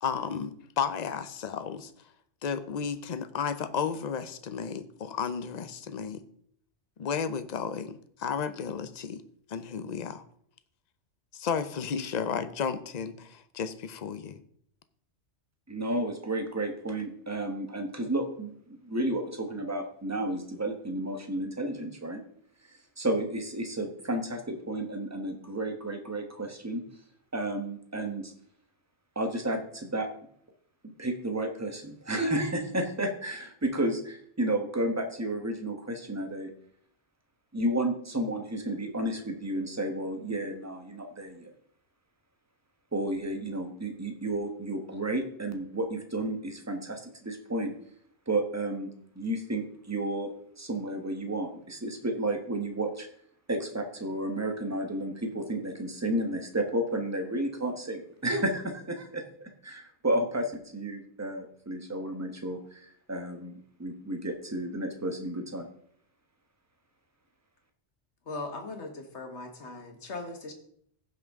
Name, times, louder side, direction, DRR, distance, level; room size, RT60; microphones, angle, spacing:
voice 1, 0.0-1.9 2.4-6.2 7.0-9.2 9.5-10.2 11.3-14.4, left 6 dB, 45° left, 11 dB, 0.7 m, -33 dB
voice 2, 15.7-22.2 23.0-26.8 27.3-28.3 29.1-30.1 30.8-36.5 37.5-41.5 42.9-47.7 48.3-53.1 53.5-65.7, right 1 dB, 15° right, 5 dB, 1.1 m, -32 dB
voice 3, 68.3-70.5, left 3 dB, 75° left, 4 dB, 1.8 m, -39 dB
15.5 x 5.9 x 3.6 m, 0.65 s
omnidirectional pair, 1.2 m